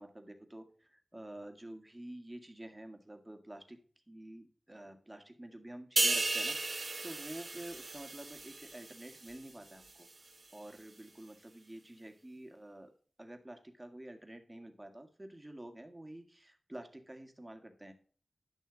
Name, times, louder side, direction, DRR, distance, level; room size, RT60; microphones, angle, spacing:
voice 1, 0.0-12.9 13.2-17.9, right 1 dB, 15° right, 5 dB, 1.8 m, -49 dB
sound 1, 6.0-9.5 9.9-10.1, right 3 dB, 50° right, 0.9 m, -35 dB
10.5 x 6.4 x 3.9 m, 0.42 s
wide cardioid pair, 60°, 0 cm